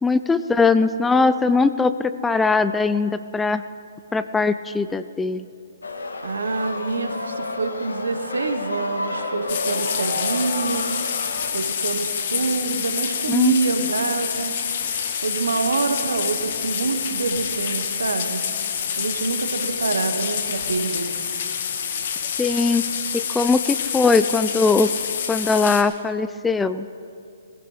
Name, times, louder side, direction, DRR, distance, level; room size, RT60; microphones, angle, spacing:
voice 1, 0.0-3.6 4.1-5.5 13.3-13.6 22.4-22.8 23.1-24.9 25.3-26.9, left 4 dB, 10° left, 12 dB, 0.4 m, -20 dB
sound 1, 5.8-11.5, left 2 dB, 80° left, 1.6 m, -30 dB
voice 2, 6.2-10.9 11.5-14.6 14.8-14.9 15.2-18.4 19.0-21.3, right 3 dB, 75° right, 7 dB, 1.3 m, -26 dB
sound 2, 9.5-25.8, left 8 dB, 55° left, 1.3 m, -27 dB
20.5 x 16.0 x 3.4 m, 2.4 s
figure-of-eight pair, 130°, 0 cm